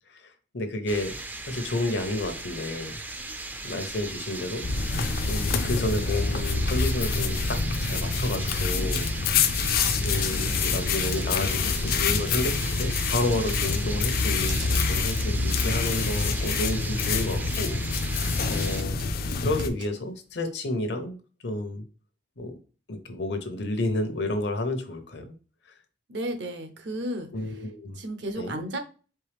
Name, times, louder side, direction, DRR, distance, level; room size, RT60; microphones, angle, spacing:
voice 1, 0.5-1.2 1.5-2.9 3.6-4.7 5.3-9.1 9.9-21.2 21.4-21.8 22.4-22.6 22.9-25.3 27.3-28.0 28.4-28.6, left 1 dB, 70° left, 7 dB, 0.8 m, -31 dB
sound 1, 0.9-18.8, right 2 dB, 10° right, 0.3 m, -37 dB
sound 2, 4.6-19.7, left 4 dB, 55° left, 0.4 m, -26 dB
sound 3, 10.1-20.6, right 3 dB, 85° right, 1.9 m, -48 dB
voice 2, 26.1-27.6 28.0-28.8, right 1 dB, 70° right, 6 dB, 0.8 m, -33 dB
4.5 x 3.2 x 3.4 m, 0.36 s
head